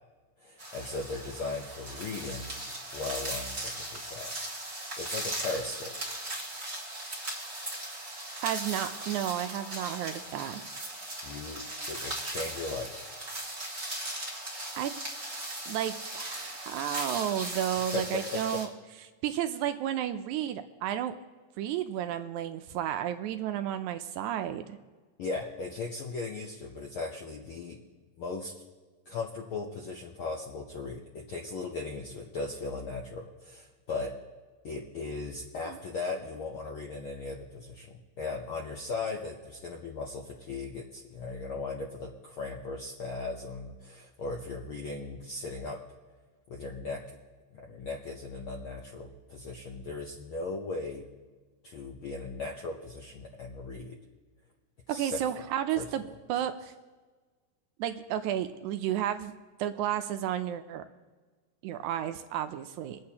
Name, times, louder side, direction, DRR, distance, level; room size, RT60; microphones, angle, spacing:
voice 1, 0.4-2.5 2.9-4.3 5.0-5.9 11.2-13.0 17.9-18.6 25.2-27.8 28.2-28.5 29.1-34.1 34.6-45.8 46.5-47.0 47.5-51.1 51.6-54.0 54.9-55.2 55.8-55.9, left 3 dB, 75° left, 0 dB, 1.2 m, -37 dB
sound 1, 0.6-18.6, right 1 dB, 25° right, 1.2 m, -38 dB
voice 2, 8.4-10.6 14.7-14.9 15.7-18.7 19.2-21.1 21.6-24.8 35.7-35.8 54.9-56.0 56.3-56.7 57.8-59.3 59.6-60.9 61.6-63.0, right 11 dB, 80° right, 9 dB, 1.9 m, -32 dB
24.0 x 8.6 x 2.8 m, 1.4 s
omnidirectional pair, 3.5 m